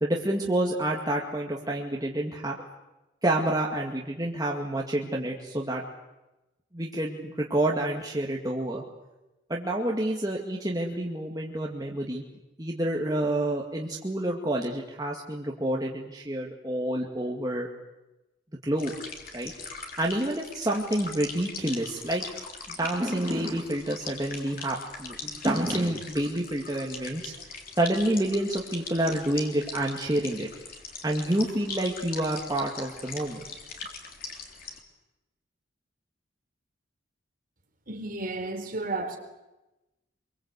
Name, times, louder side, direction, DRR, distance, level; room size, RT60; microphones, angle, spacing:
voice 1, 0.0-2.6 3.2-5.8 6.7-8.8 9.5-12.2 12.6-17.7 18.6-18.9 19.3-19.5 20.0-22.2 22.8-27.3 27.8-30.5 31.0-33.4, right 1 dB, 20° right, 2.2 m, -28 dB
sound 1, 18.8-34.8, left 4 dB, 45° left, 3.6 m, -41 dB
voice 2, 37.9-39.2, right 2 dB, 45° right, 4.3 m, -32 dB
25.5 x 24.0 x 8.3 m
head